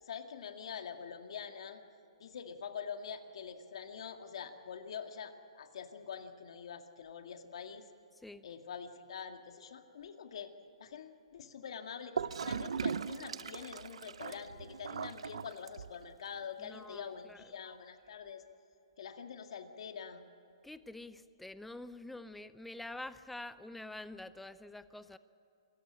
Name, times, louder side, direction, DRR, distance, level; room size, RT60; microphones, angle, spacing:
voice 1, 0.0-1.8 2.2-7.9 8.4-10.5 10.8-18.4 19.0-20.3, left 7 dB, 65° left, 6 dB, 2.0 m, -45 dB
Gurgling / Toilet flush, 12.2-16.1, right 6 dB, 80° right, 0.6 m, -39 dB
voice 2, 16.6-17.5 20.6-25.2, left 2 dB, 5° left, 14 dB, 0.6 m, -47 dB
27.0 x 15.0 x 8.7 m, 2.8 s
hypercardioid pair, 145°, 3 cm